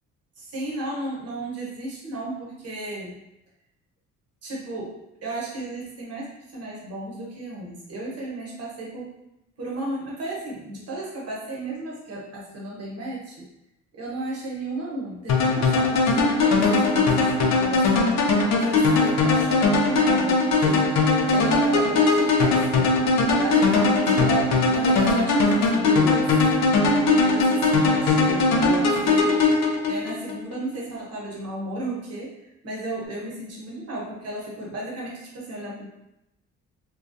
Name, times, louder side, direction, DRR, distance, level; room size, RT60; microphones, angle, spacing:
voice 1, 0.4-3.2 4.4-9.1 9.6-13.5 13.9-18.1 18.6-20.9 21.2-22.9 23.3-26.3 26.8-29.4 29.9-32.3 32.6-35.9, right 2 dB, 55° right, -4 dB, 1.0 m, -34 dB
sound 1, 15.3-30.4, left 3 dB, 65° left, 0.5 m, -20 dB
2.2 x 2.2 x 2.6 m, 0.89 s
cardioid pair, 90°, 30 cm